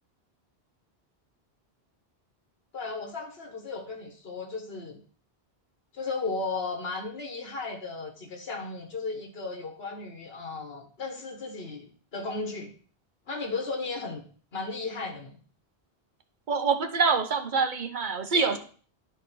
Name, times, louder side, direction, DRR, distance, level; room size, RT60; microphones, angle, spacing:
voice 1, 2.7-5.0 5.9-12.7 13.3-15.3 18.3-18.6, left 3 dB, 75° left, 3 dB, 1.5 m, -35 dB
voice 2, 16.5-18.6, right 5 dB, 50° right, 6 dB, 0.9 m, -25 dB
11.0 x 3.8 x 4.2 m, 0.42 s
omnidirectional pair, 1.0 m